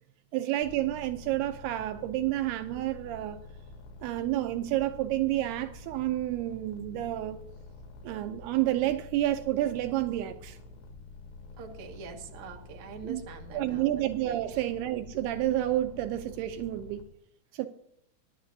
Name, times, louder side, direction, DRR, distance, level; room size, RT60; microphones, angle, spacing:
voice 1, 0.3-3.4 4.0-7.4 8.0-10.6 13.0-13.2 13.5-17.0 17.5-17.7, right 14 dB, 80° right, 8 dB, 2.6 m, -30 dB
sound 1, 0.6-17.0, left 3 dB, 85° left, 3.8 m, -48 dB
voice 2, 11.6-14.1 14.5-14.6, right 5 dB, 55° right, 3 dB, 2.6 m, -44 dB
23.5 x 11.0 x 2.7 m, 0.71 s
omnidirectional pair, 4.7 m